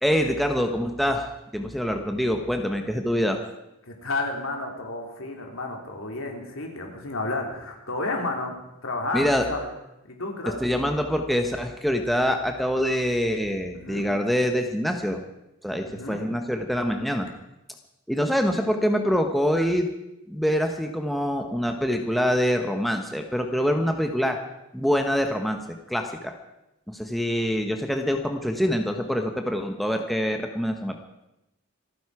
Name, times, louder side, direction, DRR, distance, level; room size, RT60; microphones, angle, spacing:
voice 1, 0.0-3.4 9.1-9.5 10.6-15.2 15.6-17.3 18.1-19.9 20.3-24.4 24.7-25.6 25.9-26.3 26.9-31.0, equal, ahead, 3 dB, 1.0 m, -25 dB
voice 2, 3.8-8.5 8.8-9.7 10.0-10.6 13.7-14.0 15.9-16.2, left 2 dB, 70° left, 2 dB, 3.1 m, -31 dB
27.0 x 9.4 x 4.8 m, 0.89 s
head